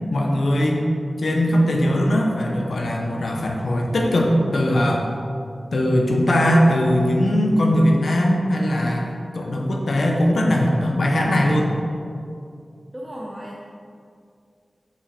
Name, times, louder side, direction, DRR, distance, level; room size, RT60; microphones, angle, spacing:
voice 1, 0.1-0.8 1.2-5.1 5.7-9.1 9.3-11.7, equal, 85° left, 0 dB, 1.0 m, -20 dB
voice 2, 12.9-13.6, equal, 20° right, -4 dB, 0.8 m, -35 dB
7.5 x 5.3 x 4.4 m, 2.4 s
wide cardioid pair, 70°, 0 cm